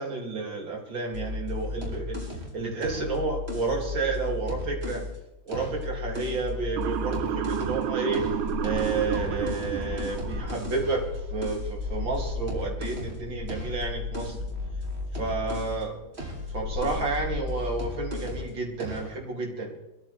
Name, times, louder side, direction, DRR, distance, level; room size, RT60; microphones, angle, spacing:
voice 1, 0.0-2.2 2.5-5.0 5.5-8.3 8.6-14.4 15.1-16.0 16.5-19.7, right 3 dB, 70° right, 0 dB, 3.5 m, -31 dB
sound 1, 1.1-5.1 5.5-7.8 8.1-15.8 16.1-18.5 18.8-19.1, left 2 dB, 30° right, 3.4 m, -35 dB
Motor vehicle (road) / Siren, 6.8-10.9, right 10 dB, 90° right, 1.7 m, -31 dB
sound 2, 8.0-17.4, left 3 dB, 45° right, 2.6 m, -39 dB
24.0 x 13.5 x 3.4 m, 0.95 s
omnidirectional pair, 2.2 m